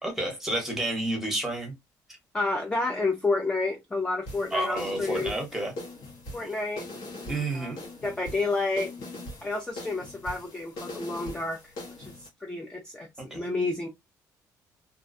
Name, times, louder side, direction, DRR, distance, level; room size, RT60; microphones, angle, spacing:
voice 1, 0.0-1.7 4.5-5.7 7.3-7.8 13.3-13.4, right 1 dB, 5° right, 0.9 m, -30 dB
voice 2, 2.3-5.3 6.3-6.9 7.5-8.9 9.4-11.6 12.0-13.9, left 3 dB, 10° left, 0.4 m, -30 dB
sound 1, 4.3-12.3, left 1 dB, 70° left, 1.1 m, -41 dB
2.4 x 2.2 x 2.5 m
cardioid pair, 145°, 7 cm